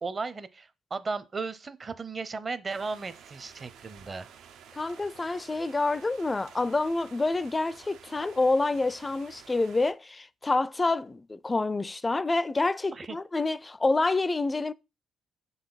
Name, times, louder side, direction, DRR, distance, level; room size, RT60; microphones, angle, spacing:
voice 1, 0.0-4.3 12.9-13.2, right 4 dB, 35° right, 0.7 m, -35 dB
sound 1, 2.7-9.9, right 7 dB, 80° right, 0.7 m, -52 dB
voice 2, 4.7-14.7, left 3 dB, 20° left, 0.4 m, -27 dB
6.3 x 4.0 x 4.0 m
cardioid pair, 90°, 0 cm